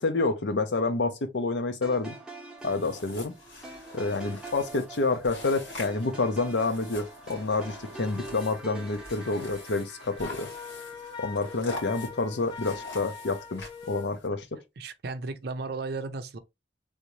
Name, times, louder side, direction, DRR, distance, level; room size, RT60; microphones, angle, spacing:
voice 1, 0.0-2.1 2.6-3.3 3.9-10.5 11.2-14.5, left 3 dB, 65° left, 0.6 m, -28 dB
sound 1, 1.8-12.1, right 2 dB, 5° right, 0.8 m, -45 dB
sound 2, 2.6-14.3, left 2 dB, 85° left, 2.1 m, -45 dB
Wind instrument woodwind instrument, 10.2-14.1, left 5 dB, 25° left, 0.7 m, -42 dB
voice 2, 14.8-16.4, right 3 dB, 55° right, 0.5 m, -34 dB
3.5 x 2.7 x 3.0 m
head